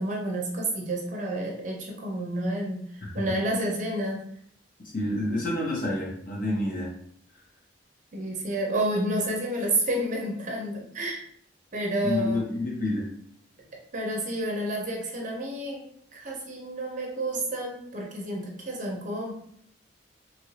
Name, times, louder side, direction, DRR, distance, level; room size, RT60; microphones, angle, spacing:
voice 1, 0.0-4.2 8.1-11.2 11.7-12.4 13.9-15.8 16.1-19.3, right 1 dB, 40° right, 0 dB, 0.6 m, -30 dB
voice 2, 4.9-6.9 12.0-13.1, left 1 dB, 45° left, -3 dB, 1.0 m, -28 dB
3.0 x 2.6 x 3.1 m, 0.67 s
head